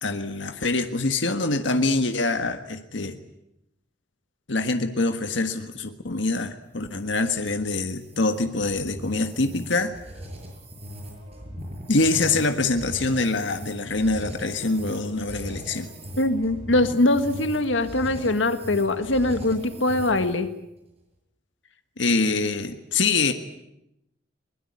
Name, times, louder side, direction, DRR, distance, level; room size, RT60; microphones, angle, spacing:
voice 1, 0.0-3.2 4.5-9.9 11.6-15.9 22.0-23.3, left 3 dB, 75° left, 7 dB, 1.6 m, -25 dB
sound 1, 6.6-20.5, equal, 35° right, 7.5 m, -39 dB
voice 2, 16.2-20.5, left 2 dB, 90° left, 10 dB, 1.7 m, -22 dB
22.5 x 20.5 x 9.6 m, 0.83 s
head